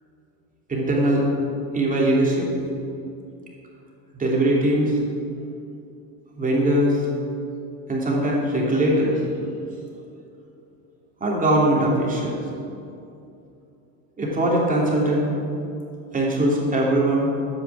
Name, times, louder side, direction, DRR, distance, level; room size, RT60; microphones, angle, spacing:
voice 1, 0.7-1.3 1.7-2.5 4.1-5.0 6.4-6.9 7.9-9.2 11.2-12.4 14.2-15.3 16.1-17.3, right 1 dB, 20° right, -4 dB, 3.0 m, -21 dB
10.0 x 8.6 x 7.3 m, 2.6 s
supercardioid pair, 120°, 43 cm